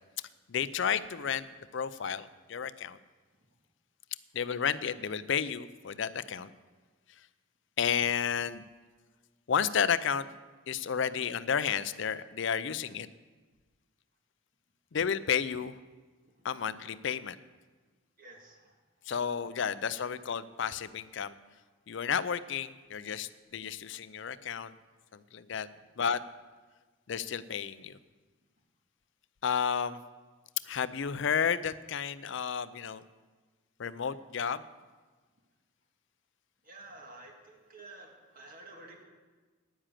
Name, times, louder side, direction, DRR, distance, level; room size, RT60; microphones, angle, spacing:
voice 1, 0.5-1.5 1.7-3.0 4.3-6.5 7.8-8.6 9.5-10.3 10.7-13.1 14.9-15.7 16.4-17.4 19.1-21.3 21.9-24.7 25.3-25.7 26.0-26.2 27.1-28.0 29.4-30.0 30.6-33.0 33.8-34.6, left 7 dB, 60° left, 15 dB, 0.5 m, -32 dB
voice 2, 18.2-18.8 25.7-25.9 36.6-39.0, right 2 dB, 45° right, 2 dB, 1.9 m, -51 dB
10.0 x 9.9 x 7.5 m, 1.3 s
head